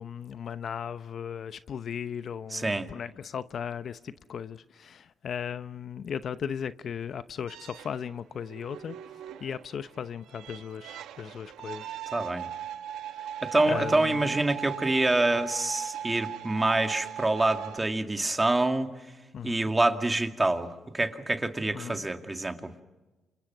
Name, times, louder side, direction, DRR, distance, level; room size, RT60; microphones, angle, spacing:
voice 1, 0.0-12.3 13.1-13.3 13.7-14.4 19.3-19.7 21.7-22.1, left 7 dB, 55° left, 0.8 m, -37 dB
voice 2, 2.5-2.9 12.1-12.5 13.4-18.9 19.4-22.7, right 2 dB, 15° right, 2.2 m, -26 dB
sound 1, 7.5-17.8, right 10 dB, 85° right, 1.2 m, -39 dB
28.5 x 27.0 x 6.1 m
cardioid pair, 90°, 0 cm